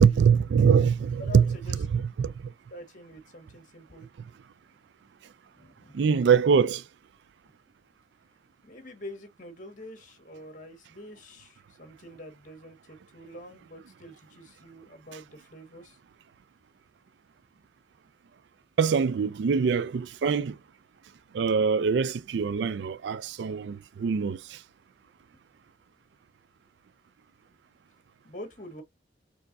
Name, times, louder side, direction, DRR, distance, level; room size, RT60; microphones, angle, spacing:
voice 1, 0.0-2.5 5.9-6.8 18.8-20.6 21.3-24.6, right 6 dB, 75° right, 0.4 m, -23 dB
voice 2, 1.2-1.7 2.7-4.1 5.5-6.0 8.6-16.0 28.2-28.8, left 1 dB, 45° left, 1.5 m, -45 dB
4.5 x 3.6 x 2.6 m
head